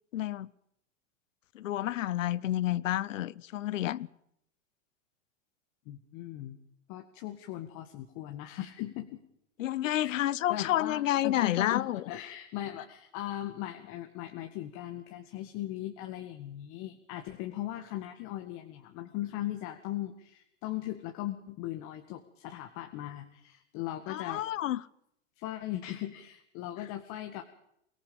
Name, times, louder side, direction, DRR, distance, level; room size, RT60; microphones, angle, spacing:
voice 1, 0.1-0.5 1.5-4.1 9.6-12.0 24.1-24.8, left 13 dB, 80° left, 0.9 m, -30 dB
voice 2, 5.9-6.6 6.9-9.2 10.0-10.2 10.5-24.4 25.4-27.4, left 14 dB, 45° left, 2.0 m, -38 dB
23.5 x 18.0 x 7.1 m
hypercardioid pair, 115°, 38 cm